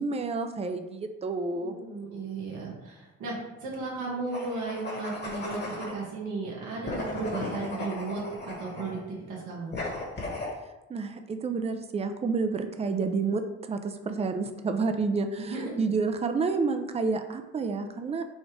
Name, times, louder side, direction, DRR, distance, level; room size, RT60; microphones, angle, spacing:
voice 1, 0.0-1.8 10.9-18.2, right 4 dB, 20° right, 7 dB, 0.4 m, -29 dB
voice 2, 1.6-9.7 15.4-15.7, right 3 dB, 85° right, -4 dB, 1.5 m, -35 dB
sound 1, 4.3-6.0 6.8-9.0 9.7-10.5, left 2 dB, 35° left, 1.3 m, -36 dB
4.2 x 2.4 x 4.6 m, 1.0 s
cardioid pair, 90°, 30 cm